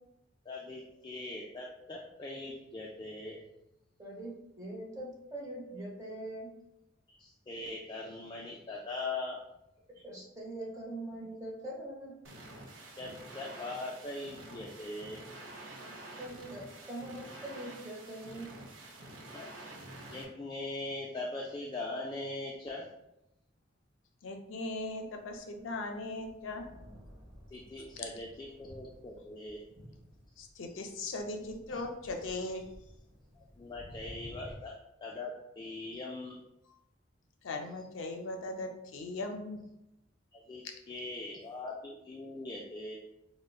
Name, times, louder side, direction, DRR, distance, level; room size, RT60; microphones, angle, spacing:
voice 1, 0.5-3.4 7.1-9.4 12.9-15.2 19.3-19.5 20.1-22.9 27.5-29.6 31.7-31.8 33.4-34.7 35.0-36.4 40.3-43.0, left 2 dB, 20° left, -3 dB, 0.3 m, -41 dB
voice 2, 4.0-6.5 9.9-12.1 15.8-18.6, right 1 dB, 20° right, -4 dB, 0.8 m, -43 dB
sound 1, 12.2-20.2, right 2 dB, 80° right, 0.6 m, -48 dB
voice 3, 24.2-26.6 28.0-28.1 30.4-32.6 37.4-39.6, left 2 dB, 85° left, 4 dB, 0.5 m, -39 dB
Thunder, 25.0-34.6, equal, 5° left, 1.3 m, -54 dB
4.9 x 2.1 x 2.3 m, 0.87 s
head